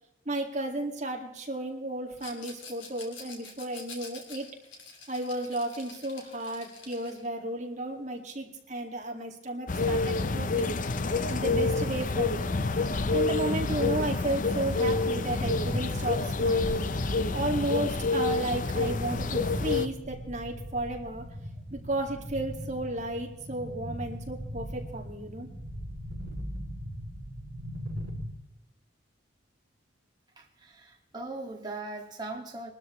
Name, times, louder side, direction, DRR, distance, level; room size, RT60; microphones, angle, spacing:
voice 1, 0.3-4.5 5.1-10.7 11.3-12.5 13.1-16.9 17.3-21.2 21.7-25.5, right 1 dB, 35° right, 2 dB, 2.1 m, -33 dB
Rattle, 2.2-7.3, left 4 dB, 75° left, 2.6 m, -47 dB
sound 1, 9.7-19.9, left 3 dB, 40° left, 0.6 m, -28 dB
sound 2, 15.4-28.3, equal, 50° right, 4.5 m, -39 dB
voice 2, 30.4-32.7, right 2 dB, 20° right, 1 dB, 2.0 m, -39 dB
23.0 x 12.5 x 3.2 m, 0.91 s
head